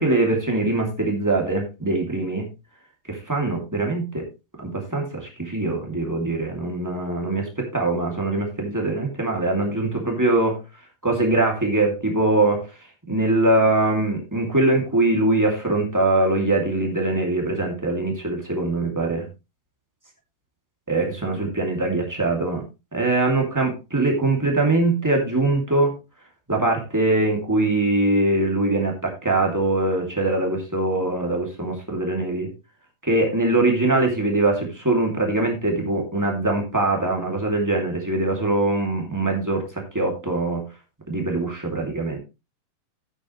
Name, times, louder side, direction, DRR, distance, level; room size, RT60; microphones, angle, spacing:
voice 1, 0.0-2.4 3.1-4.3 4.6-10.6 11.0-12.6 13.1-19.3 20.9-22.6 22.9-25.9 26.5-32.5 33.0-40.6 41.1-42.2, right 2 dB, 5° right, 1 dB, 1.4 m, -22 dB
11.0 x 9.5 x 3.2 m, 0.27 s
omnidirectional pair, 4.7 m